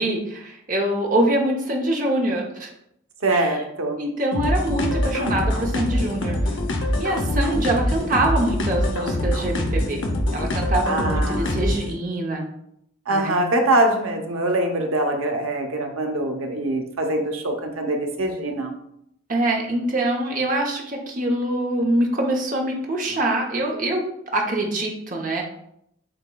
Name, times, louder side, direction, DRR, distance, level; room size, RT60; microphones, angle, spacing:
voice 1, 0.0-2.7 3.3-3.6 4.0-6.6 7.0-10.0 10.3-12.4 13.1-13.4 19.3-24.0 24.3-25.4, right 1 dB, 40° right, 1 dB, 0.7 m, -24 dB
voice 2, 3.2-4.0 10.9-11.6 13.1-18.7, right 1 dB, 90° right, 3 dB, 0.8 m, -23 dB
sound 1, 4.3-11.9, left 1 dB, 65° left, 0.7 m, -24 dB
7.6 x 2.9 x 2.3 m, 0.75 s
head